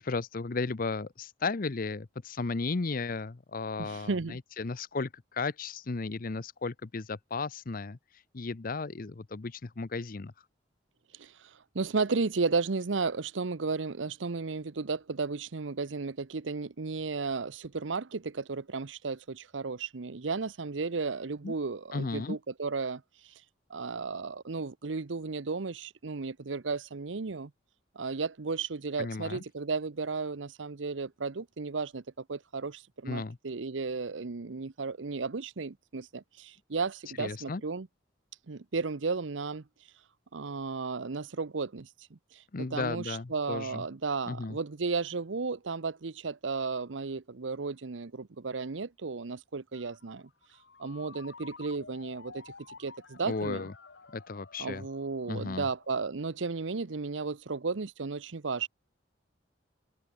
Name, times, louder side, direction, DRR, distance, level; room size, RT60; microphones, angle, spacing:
voice 1, 0.0-10.3 21.4-21.5 21.9-22.4 29.0-29.4 33.1-33.4 37.2-37.6 42.5-43.8 44.3-44.6 53.2-53.7 54.1-54.8 55.3-55.7, left 3 dB, 50° left, 0.7 m, -35 dB
voice 2, 3.8-4.4 11.2-11.3 11.7-23.0 23.7-27.5 28.0-32.0 32.3-37.9 38.5-39.6 40.3-42.2 42.6-50.3 50.8-52.4 52.8-53.6 54.6-58.7, right 4 dB, 85° right, 0.8 m, -34 dB
Ringtone, 49.7-57.2, left 4 dB, 70° left, 1.9 m, -53 dB
head